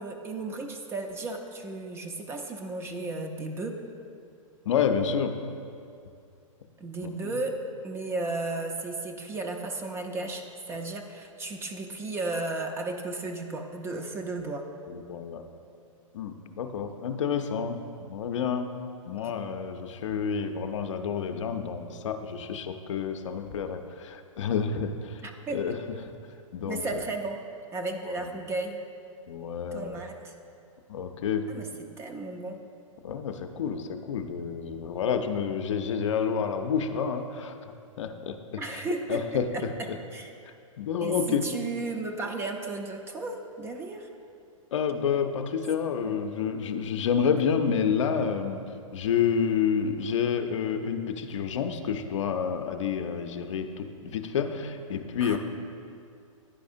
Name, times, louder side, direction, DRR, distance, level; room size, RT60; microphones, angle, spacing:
voice 1, 0.0-3.7 6.8-7.5 7.8-14.7 19.1-19.2 25.2-25.6 26.7-27.4 27.7-28.8 29.7-30.3 31.5-31.7 32.0-32.6 38.6-39.2 39.5-39.6 40.1-40.3 41.0-44.1 46.1-46.2 47.3-47.4 55.2-55.4, right 3 dB, 15° right, 3 dB, 0.4 m, -34 dB
voice 2, 4.7-5.4 7.0-7.4 14.9-15.5 16.1-18.7 19.1-25.2 25.5-25.8 26.5-27.0 28.0-28.3 29.3-30.0 30.9-31.5 33.0-37.5 38.0-38.8 39.1-40.0 40.4-41.5 44.7-48.6 48.9-55.4, left 7 dB, 60° left, 7 dB, 0.5 m, -29 dB
10.0 x 4.7 x 2.6 m, 2.4 s
figure-of-eight pair, 115°, 17 cm